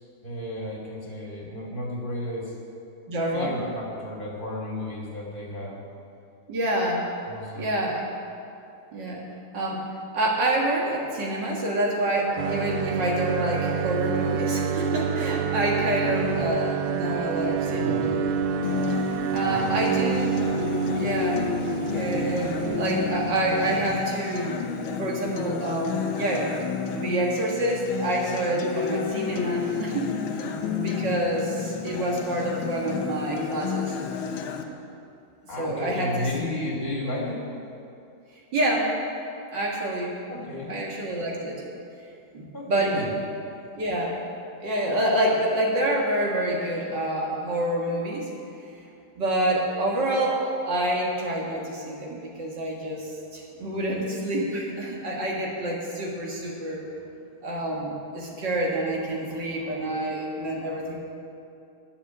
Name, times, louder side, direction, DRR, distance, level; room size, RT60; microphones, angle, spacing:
voice 1, 0.2-2.5 3.3-5.8 7.3-7.8 16.0-16.5 17.7-18.4 19.3-20.2 35.5-37.5 40.3-40.8 42.5-43.1, left 1 dB, 25° left, -4 dB, 2.6 m, -33 dB
voice 2, 3.1-3.6 6.5-7.1 7.6-8.1 8.9-9.3 9.5-9.9 10.1-18.1 19.3-20.5 21.0-21.5 21.9-24.6 25.0-26.6 26.9-30.1 30.7-33.9 35.6-36.3 38.5-39.0 39.5-40.2 40.7-41.6 42.3-43.1 43.8-44.2 44.6-48.3 49.2-56.8 57.4-61.0, right 1 dB, 60° right, -2 dB, 2.3 m, -27 dB
sound 1, 12.4-24.0, right 6 dB, 85° right, 1.5 m, -28 dB
Acoustic guitar, 18.6-34.6, left 7 dB, 80° left, 1.6 m, -31 dB
10.0 x 7.3 x 9.4 m, 2.6 s
omnidirectional pair, 2.2 m